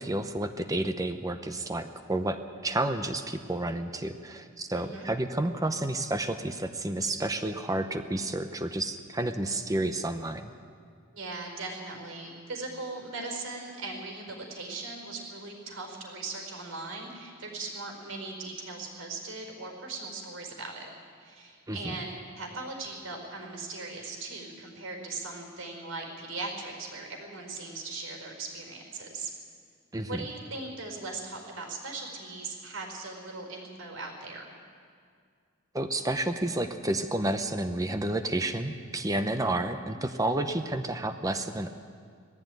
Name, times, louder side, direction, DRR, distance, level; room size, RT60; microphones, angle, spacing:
voice 1, 0.0-10.5 21.7-22.0 29.9-30.2 35.7-41.7, right 1 dB, 15° right, 8 dB, 0.7 m, -30 dB
voice 2, 4.7-5.1 11.1-20.9 21.2-29.3 30.1-34.5, right 3 dB, 80° right, 2 dB, 4.7 m, -39 dB
19.5 x 14.5 x 9.3 m, 2.1 s
head